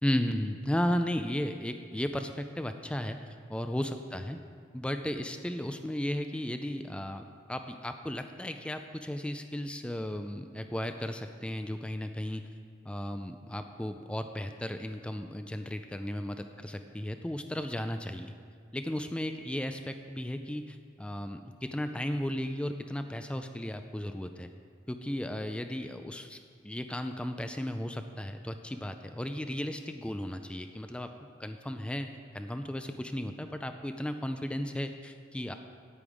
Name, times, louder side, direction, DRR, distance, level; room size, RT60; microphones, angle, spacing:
voice 1, 0.0-3.2 3.5-4.4 4.7-7.2 7.5-12.5 12.8-18.3 18.7-24.5 24.9-26.4 26.6-31.1 31.4-35.5, left 1 dB, 5° left, 7 dB, 0.4 m, -35 dB
9.6 x 8.7 x 4.9 m, 2.1 s
head